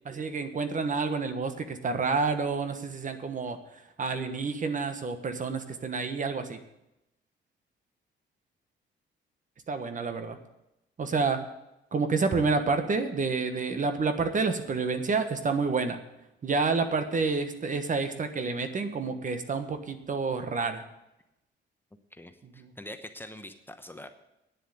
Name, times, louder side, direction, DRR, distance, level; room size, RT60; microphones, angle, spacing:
voice 1, 0.0-6.6 9.7-10.4 11.0-11.4 11.9-16.0 16.4-20.8 22.6-22.7, right 4 dB, 40° right, 8 dB, 1.3 m, -29 dB
voice 2, 22.1-24.1, left 1 dB, 10° left, 7 dB, 1.0 m, -44 dB
9.8 x 7.1 x 9.2 m, 0.89 s
cardioid pair, 90°, 20 cm